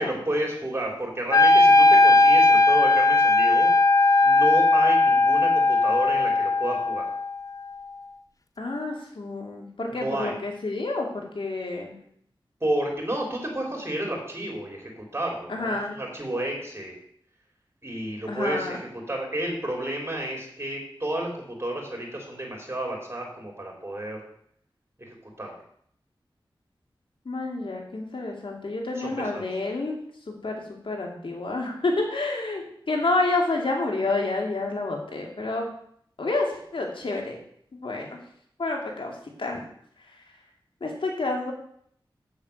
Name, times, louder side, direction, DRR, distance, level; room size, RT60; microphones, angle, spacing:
voice 1, 0.0-3.7 4.2-7.1 9.9-10.3 12.6-16.9 17.8-24.2 25.0-25.1 25.4-25.5 29.0-29.5, right 1 dB, 25° right, 0 dB, 3.7 m, -31 dB
Wind instrument woodwind instrument, 1.3-7.4, left 2 dB, 40° left, 0.8 m, -18 dB
voice 2, 8.6-12.0 15.5-16.0 18.3-18.8 27.2-30.0 30.3-35.7 36.2-37.4 37.7-38.2 38.6-39.6 40.8-41.5, left 2 dB, 75° left, 1 dB, 2.4 m, -29 dB
7.3 x 7.1 x 6.8 m, 0.67 s
cardioid pair, 45°, 9 cm